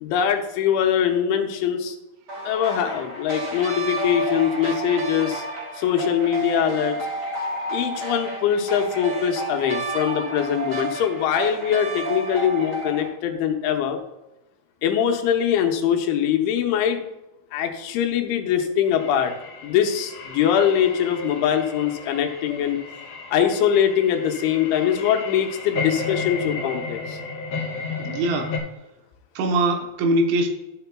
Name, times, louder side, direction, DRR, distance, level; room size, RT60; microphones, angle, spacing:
voice 1, 0.0-2.0 2.4-5.5 5.7-7.0 7.7-14.0 14.8-17.0 17.5-19.3 19.6-22.8 23.3-27.2, left 9 dB, 80° left, 4 dB, 3.2 m, -22 dB
sound 1, 2.3-13.1, right 2 dB, 30° right, 2.8 m, -31 dB
sound 2, 18.9-28.6, left 4 dB, 50° left, 2.2 m, -33 dB
voice 2, 28.0-28.5 29.4-30.5, right 2 dB, 75° right, 3 dB, 3.1 m, -22 dB
12.5 x 6.8 x 2.2 m, 1.0 s
omnidirectional pair, 5.5 m